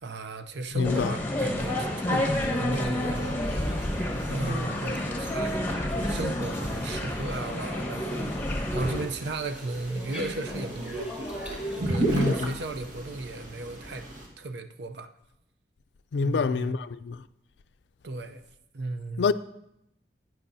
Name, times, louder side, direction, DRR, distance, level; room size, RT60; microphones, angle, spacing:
voice 1, 0.0-3.4 4.3-11.1 11.7-14.1 14.4-15.1 16.1-16.8 18.0-18.4 18.7-19.3, right 2 dB, 75° right, 0.6 m, -35 dB
voice 2, 0.7-1.1 12.0-12.5 16.1-17.2 19.2-19.3, left 5 dB, 75° left, 0.4 m, -26 dB
sound 1, 0.8-9.0, left 1 dB, 10° left, 1.1 m, -29 dB
sound 2, 3.1-12.4, equal, 5° right, 2.0 m, -39 dB
sound 3, 8.8-14.3, right 2 dB, 50° right, 1.5 m, -34 dB
11.5 x 9.0 x 2.7 m
head